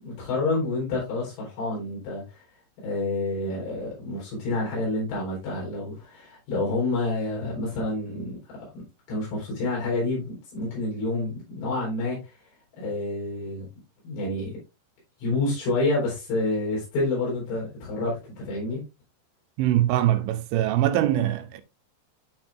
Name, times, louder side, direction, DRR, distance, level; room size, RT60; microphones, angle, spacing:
voice 1, 0.0-2.4 2.8-12.3 12.7-13.7 14.0-14.5 15.2-18.8, left 2 dB, 85° left, 6.7 m, -28 dB
voice 2, 19.6-21.6, right 13 dB, 85° right, 3.2 m, -23 dB
12.0 x 4.4 x 2.5 m
omnidirectional pair, 5.5 m